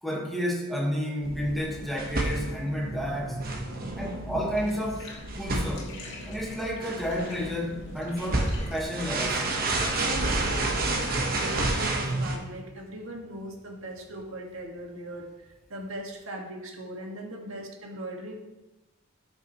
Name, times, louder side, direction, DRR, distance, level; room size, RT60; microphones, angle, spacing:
voice 1, 0.0-3.4 3.9-5.1 5.4-6.0 6.3-9.5, equal, ahead, -3 dB, 1.6 m, -31 dB
sound 1, 1.2-12.4, right 2 dB, 45° right, 1.2 m, -30 dB
Bathtub (filling or washing), 4.5-16.1, left 1 dB, 60° left, 2.4 m, -47 dB
voice 2, 9.9-15.3 15.7-18.4, right 1 dB, 75° right, 1 dB, 1.7 m, -39 dB
14.0 x 6.5 x 3.1 m, 1.1 s
head